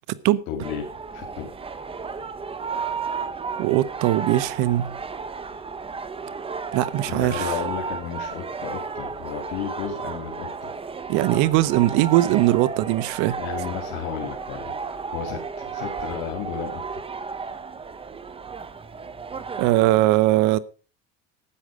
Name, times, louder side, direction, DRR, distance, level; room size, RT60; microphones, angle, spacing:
voice 1, 0.5-1.6 7.0-10.7 13.4-17.0, left 8 dB, 85° left, 2.5 m, -33 dB
sound 1, 0.6-20.1, right 5 dB, 20° right, 0.9 m, -33 dB
voice 2, 3.6-5.0 6.7-7.5 11.1-13.4 19.6-20.6, right 16 dB, 75° right, 0.9 m, -20 dB
13.0 x 9.5 x 5.0 m
cardioid pair, 130°, 29 cm